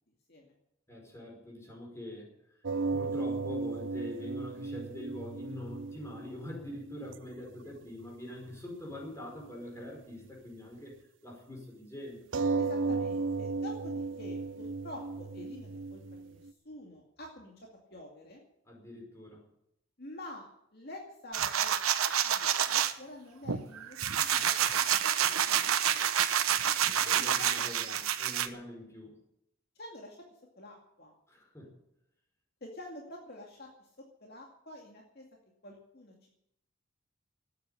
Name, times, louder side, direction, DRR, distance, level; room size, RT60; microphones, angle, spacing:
voice 1, 0.9-10.9 11.2-12.2 18.6-19.5 26.8-29.2 31.3-31.8, left 1 dB, 15° left, -1 dB, 5.1 m, -44 dB
sound 1, 2.6-7.8 8.0-8.1 8.5-8.6 9.0-9.1 12.3-16.5, right 4 dB, 60° right, 0.6 m, -35 dB
voice 2, 12.5-18.4 20.0-20.5 20.7-21.7 22.2-25.7 26.0-26.5 27.1-28.0 29.8-30.2 30.6-31.1 32.6-33.9 34.2-35.2 35.6-36.3, left 1 dB, 50° left, 0 dB, 2.3 m, -48 dB
sound 2, 21.3-22.9 23.5-28.5, right 9 dB, 90° right, 1.0 m, -28 dB
13.0 x 9.3 x 9.9 m, 0.77 s
head